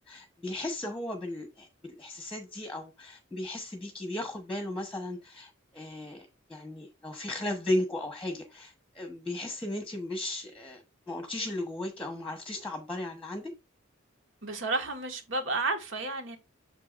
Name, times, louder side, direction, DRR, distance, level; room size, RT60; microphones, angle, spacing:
voice 1, 0.1-13.5, left 1 dB, 5° left, 1.1 m, -36 dB
voice 2, 14.4-16.4, right 2 dB, 70° right, 1.6 m, -31 dB
8.1 x 6.8 x 2.5 m
head